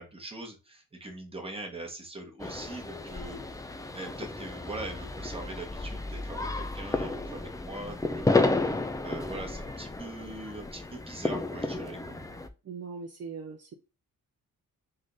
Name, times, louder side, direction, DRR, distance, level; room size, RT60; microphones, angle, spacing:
voice 1, 0.0-12.3, right 2 dB, 15° right, 1.2 m, -42 dB
sound 1, 2.4-12.5, left 2 dB, 10° left, 0.3 m, -32 dB
voice 2, 12.6-13.7, right 5 dB, 50° right, 0.6 m, -40 dB
3.6 x 3.3 x 3.9 m
wide cardioid pair, 150°, 33 cm